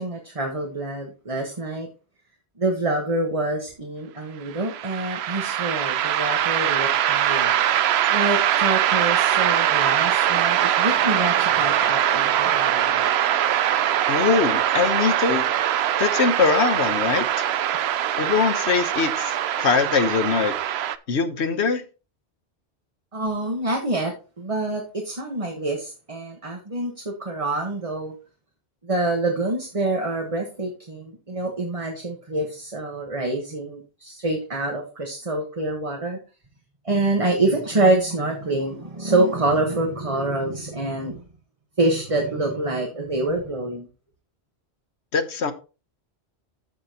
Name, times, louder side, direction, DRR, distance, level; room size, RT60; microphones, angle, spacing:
voice 1, 0.0-1.9 2.6-7.5 8.1-13.1 23.1-28.1 28.8-36.2 36.8-41.2 41.8-43.9, right 2 dB, 30° right, 1.4 m, -26 dB
sound 1, 4.5-21.0, right 11 dB, 75° right, 0.8 m, -22 dB
voice 2, 14.1-15.4 16.0-17.4 18.2-20.5 21.1-21.8 45.1-45.5, left 5 dB, 90° left, 1.3 m, -22 dB
14.0 x 5.2 x 2.9 m
omnidirectional pair, 1.1 m